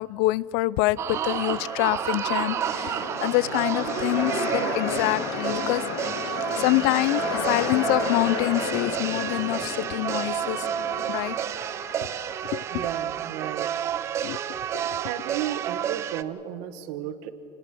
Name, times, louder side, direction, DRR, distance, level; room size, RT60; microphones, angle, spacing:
voice 1, 0.0-5.8 6.2-10.7 11.1-11.4 12.5-12.9 14.2-14.4 14.7-15.0, left 19 dB, 65° left, 0.4 m, -26 dB
sound 1, 1.0-16.2, right 10 dB, 30° right, 0.5 m, -30 dB
sound 2, 1.3-12.6, left 5 dB, 85° left, 2.4 m, -33 dB
voice 2, 12.7-14.4 15.0-17.3, right 11 dB, 70° right, 1.4 m, -34 dB
29.0 x 19.5 x 6.1 m
cardioid pair, 165°, 10 cm